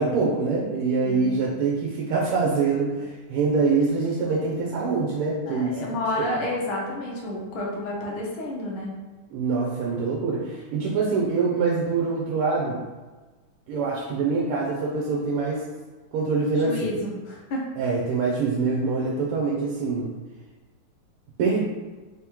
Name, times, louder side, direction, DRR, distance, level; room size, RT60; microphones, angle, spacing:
voice 1, 0.0-5.9 6.2-6.3 9.3-12.8 13.7-15.6 16.1-16.9 17.8-20.1 21.4-21.6, right 4 dB, 90° right, -3 dB, 1.6 m, -24 dB
voice 2, 1.0-1.4 5.5-8.9 16.5-17.6, left 1 dB, 80° left, -3 dB, 1.7 m, -30 dB
4.1 x 3.5 x 3.0 m, 1.3 s
omnidirectional pair, 2.4 m